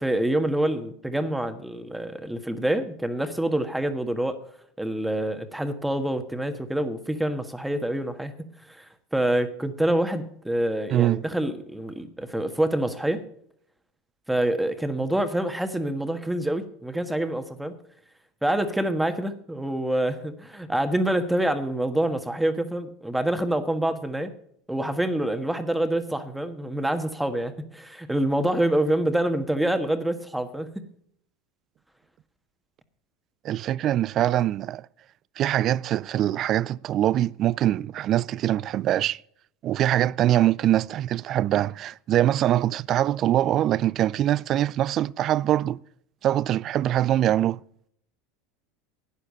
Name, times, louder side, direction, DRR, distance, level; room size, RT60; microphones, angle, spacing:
voice 1, 0.0-4.4 4.8-8.8 9.1-13.2 14.3-17.7 18.4-24.3 24.7-30.8, right 1 dB, 5° right, 1.5 m, -26 dB
voice 2, 10.9-11.2 33.4-34.9 35.4-39.2 39.6-45.8 46.2-47.6, right 12 dB, 45° right, 0.4 m, -23 dB
12.0 x 9.9 x 5.4 m
hypercardioid pair, 85°, 0 cm